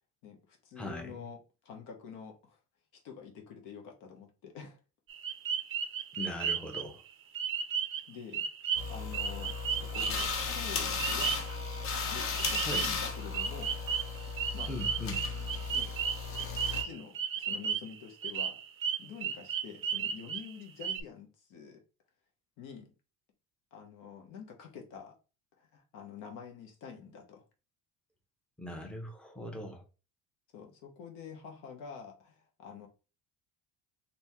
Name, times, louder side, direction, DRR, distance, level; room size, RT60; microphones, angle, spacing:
voice 1, 0.2-2.6 2.9-4.8 8.1-8.5 8.9-11.4 12.1-13.8 14.5-14.7 15.7-16.0 16.7-18.6 19.0-21.8 22.6-22.9 23.7-25.2 25.6-27.4 30.5-32.9, left 7 dB, 75° left, 1.1 m, -47 dB
voice 2, 0.8-1.2 6.1-7.0 12.7-12.8 14.7-15.2 28.6-29.8, left 1 dB, 5° left, 0.8 m, -40 dB
sound 1, 5.1-6.9 7.3-8.1 8.3-10.3 11.0-11.5 12.4-13.0 13.3-18.0 18.2-20.5 20.8-21.0, right 7 dB, 40° right, 0.4 m, -34 dB
sound 2, 8.7-16.8, left 5 dB, 45° left, 0.7 m, -35 dB
2.7 x 2.7 x 3.5 m
cardioid pair, 110°, 32 cm